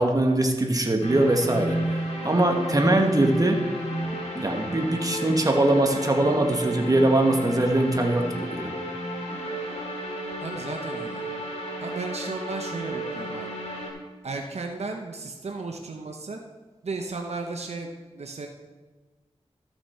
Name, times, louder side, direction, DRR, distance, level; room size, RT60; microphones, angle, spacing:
voice 1, 0.0-3.7 4.3-8.7, right 1 dB, 35° right, 3 dB, 1.3 m, -22 dB
sound 1, 1.0-13.9, equal, 80° left, 2.6 m, -32 dB
voice 2, 10.4-11.2 11.8-13.5 14.2-16.4 16.8-18.5, right 3 dB, 75° right, 3 dB, 0.8 m, -34 dB
13.5 x 5.9 x 4.4 m, 1.3 s
wide cardioid pair, 60°, 11 cm